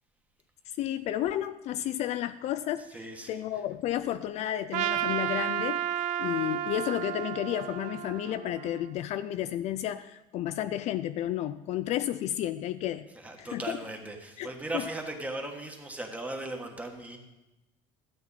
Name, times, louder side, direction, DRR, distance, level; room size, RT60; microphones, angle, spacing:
voice 1, 0.8-2.8 3.3-5.8 6.2-13.1 13.4-13.8 14.4-14.5, left 12 dB, 50° left, 12 dB, 0.4 m, -32 dB
voice 2, 2.9-3.4 13.1-17.2, right 2 dB, 10° right, 3 dB, 1.3 m, -37 dB
Trumpet, 4.7-9.0, right 11 dB, 55° right, 0.5 m, -32 dB
12.5 x 8.4 x 4.1 m, 1.0 s
cardioid pair, 130°, 15 cm